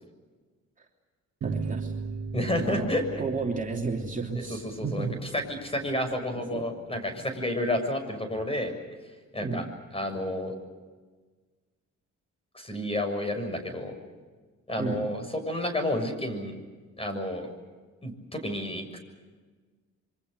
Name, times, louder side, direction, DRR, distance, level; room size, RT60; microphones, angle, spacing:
voice 1, 1.4-1.9 2.6-2.9 3.2-5.2 6.5-6.7 7.1-7.3 9.4-9.6 14.8-15.0, right 4 dB, 25° right, 0 dB, 3.2 m, -32 dB
sound 1, 1.4-6.5, right 4 dB, 55° right, 2.1 m, -38 dB
voice 2, 2.3-3.2 4.3-8.7 9.3-9.6 9.9-10.5 12.5-13.9 14.7-16.5 17.0-17.5 18.0-19.0, left 1 dB, 20° left, 7 dB, 6.7 m, -30 dB
27.5 x 24.5 x 6.7 m, 1.4 s
cardioid pair, 90°, 30 cm